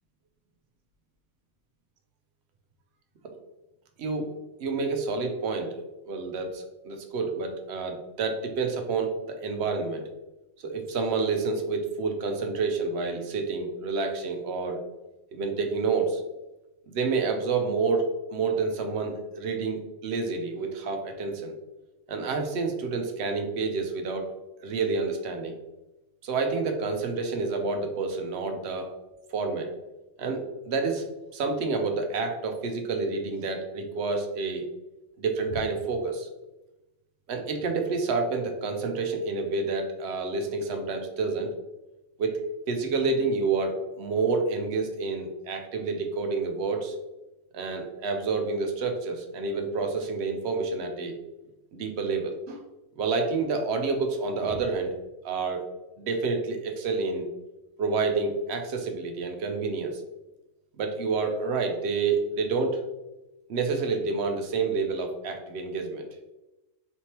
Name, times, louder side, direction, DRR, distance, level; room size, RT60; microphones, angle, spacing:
voice 1, 4.6-10.0 10.6-14.8 15.3-16.2 16.9-21.5 22.1-24.3 24.6-25.6 26.2-28.9 29.3-29.7 30.2-31.0 31.3-34.6 35.2-36.3 37.3-41.5 42.2-47.0 47.5-51.2 51.7-52.6 53.0-54.9 55.2-55.7 56.0-57.3 57.8-60.0 60.8-62.8 63.5-66.1, right 4 dB, 60° right, 5 dB, 0.9 m, -29 dB
4.2 x 3.2 x 2.9 m, 1.0 s
omnidirectional pair, 1.3 m